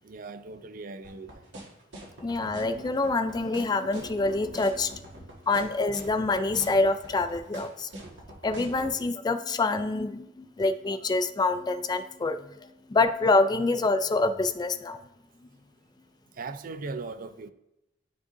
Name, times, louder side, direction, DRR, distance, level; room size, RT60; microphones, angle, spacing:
voice 1, 0.0-1.3 16.4-17.5, right 3 dB, 50° right, 0.5 m, -38 dB
sound 1, 1.0-8.9, right 1 dB, 70° right, 1.8 m, -43 dB
voice 2, 2.2-5.1 5.5-7.9 8.4-15.0, left 3 dB, 20° left, 0.3 m, -26 dB
12.5 x 5.2 x 2.6 m
head